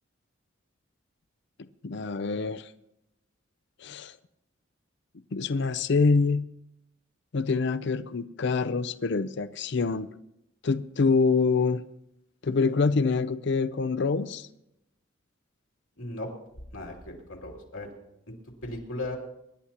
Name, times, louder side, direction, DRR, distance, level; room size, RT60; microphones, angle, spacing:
voice 1, 1.8-2.7 3.8-4.1 5.3-6.5 7.3-10.1 10.6-11.8 12.4-14.5, left 4 dB, 60° left, 0.5 m, -25 dB
voice 2, 16.0-16.3 16.7-17.9 18.6-19.2, left 2 dB, 85° left, 2.9 m, -36 dB
24.5 x 11.5 x 2.9 m
head